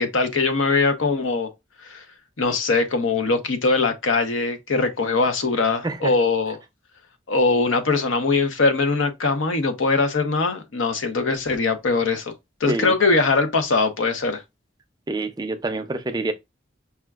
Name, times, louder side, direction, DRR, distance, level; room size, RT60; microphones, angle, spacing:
voice 1, 0.0-1.5 1.8-2.0 2.4-6.6 7.3-12.3 12.6-14.4, left 3 dB, 85° left, 0.7 m, -21 dB
voice 2, 15.1-16.3, right 2 dB, 20° right, 0.4 m, -26 dB
5.7 x 2.3 x 2.3 m
head